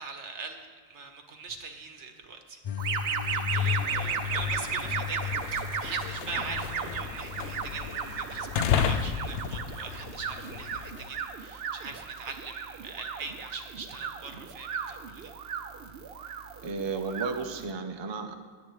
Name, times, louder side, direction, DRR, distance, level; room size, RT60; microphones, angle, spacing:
voice 1, 0.0-2.6 3.2-15.3, right 4 dB, 80° right, 5 dB, 1.3 m, -42 dB
sound 1, 2.6-10.7, left 9 dB, 50° left, 0.4 m, -36 dB
sound 2, 2.8-17.7, right 6 dB, 60° right, 0.9 m, -35 dB
sound 3, 3.4-11.2, left 8 dB, 80° left, 0.9 m, -34 dB
voice 2, 16.6-18.4, right 4 dB, 30° right, 5 dB, 0.6 m, -33 dB
21.0 x 8.2 x 3.2 m, 1.5 s
omnidirectional pair, 1.2 m